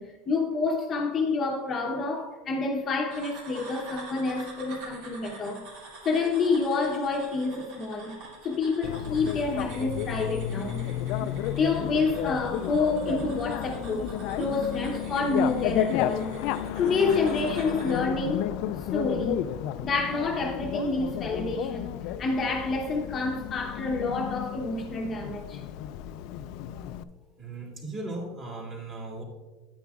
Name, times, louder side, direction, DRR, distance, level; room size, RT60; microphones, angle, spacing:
voice 1, 0.0-5.7 6.0-8.2 8.4-10.9 11.2-11.3 11.6-14.1 14.4-16.3 16.8-18.5 18.8-19.5 19.8-25.6, left 3 dB, 25° left, 0.8 m, -28 dB
sound 1, 3.1-18.0, right 2 dB, 65° right, 2.7 m, -47 dB
Bicycle, 8.8-27.0, left 11 dB, 55° left, 0.3 m, -32 dB
voice 2, 27.4-29.2, right 2 dB, 35° right, 2.6 m, -37 dB
9.4 x 9.2 x 2.4 m
supercardioid pair, 150°, 0 cm